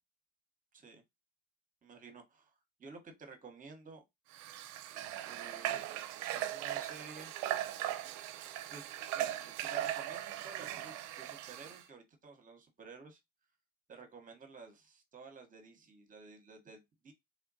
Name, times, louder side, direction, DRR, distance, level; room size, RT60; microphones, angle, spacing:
voice 1, 0.7-1.0 1.8-2.5 2.8-4.0 5.3-5.8 6.3-7.3 8.7-8.8 9.1-13.2 13.9-17.1, right 4 dB, 25° right, 0.9 m, -52 dB
Water / Water tap faucet, 4.3-11.8, right 13 dB, 65° right, 0.5 m, -39 dB
3.2 x 2.2 x 2.6 m
supercardioid pair, 100°, 30 cm